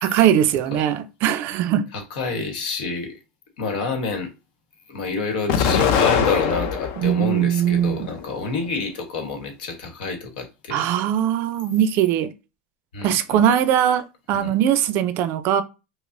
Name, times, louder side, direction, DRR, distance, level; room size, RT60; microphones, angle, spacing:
voice 1, 0.0-1.9 7.0-8.1 10.7-12.3 13.0-15.6, right 10 dB, 50° right, 0.4 m, -20 dB
voice 2, 1.9-3.2 3.6-4.3 4.9-10.9 12.9-13.4 14.3-14.5, left 4 dB, 80° left, 1.2 m, -28 dB
Explosion, 5.5-7.1 7.7-8.6, left 7 dB, 55° left, 0.6 m, -22 dB
5.1 x 2.0 x 2.5 m
supercardioid pair, 135°, 5 cm